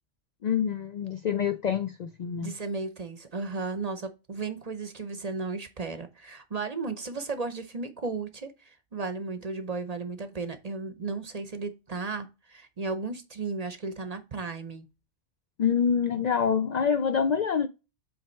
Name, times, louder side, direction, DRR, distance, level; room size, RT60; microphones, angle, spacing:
voice 1, 0.4-2.5 15.6-17.7, left 7 dB, 65° left, 0.4 m, -26 dB
voice 2, 2.4-14.9, right 4 dB, 40° right, 0.7 m, -35 dB
7.9 x 3.3 x 4.3 m
omnidirectional pair, 1.2 m